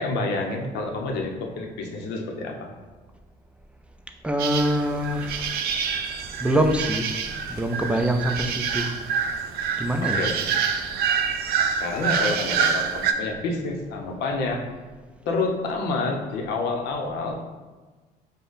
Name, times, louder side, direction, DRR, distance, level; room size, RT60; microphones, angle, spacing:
voice 1, 0.0-2.7 10.0-10.4 11.8-14.6 15.3-17.4, left 3 dB, 80° left, 2 dB, 0.7 m, -28 dB
voice 2, 4.2-5.9 6.4-7.2 7.5-8.9 9.8-10.3, right 1 dB, 5° right, 4 dB, 0.4 m, -25 dB
sound 1, 4.4-13.1, right 6 dB, 70° right, 0.4 m, -27 dB
5.1 x 2.2 x 3.9 m, 1.3 s
cardioid pair, 110°, 17 cm